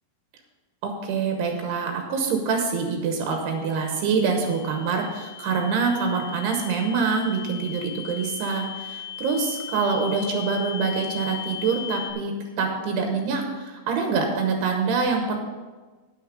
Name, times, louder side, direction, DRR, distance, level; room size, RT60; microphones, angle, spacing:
voice 1, 0.8-15.4, right 5 dB, 85° right, 3 dB, 3.1 m, -25 dB
sound 1, 3.2-12.1, left 9 dB, 80° left, 2.6 m, -38 dB
9.4 x 8.7 x 5.0 m, 1.3 s
omnidirectional pair, 4.6 m